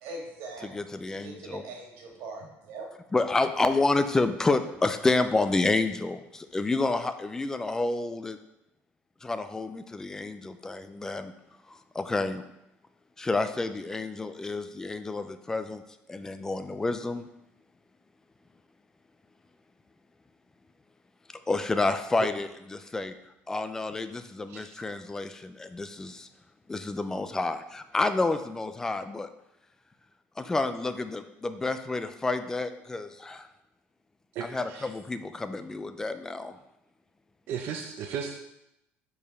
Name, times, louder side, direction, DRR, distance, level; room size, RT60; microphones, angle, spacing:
voice 1, 0.0-0.7 1.1-2.9, right 2 dB, 85° right, 0 dB, 1.9 m, -41 dB
voice 2, 0.6-1.6 3.1-8.4 9.2-11.3 11.7-12.4 13.2-15.8 16.1-17.3 21.5-23.1 23.5-26.3 26.7-29.3 30.4-33.5 34.4-36.6, left 3 dB, 10° left, 10 dB, 0.3 m, -29 dB
voice 3, 34.3-34.9 37.5-38.5, right 7 dB, 55° right, 2 dB, 0.6 m, -35 dB
5.1 x 4.7 x 5.5 m, 0.86 s
cardioid pair, 165°, 5 cm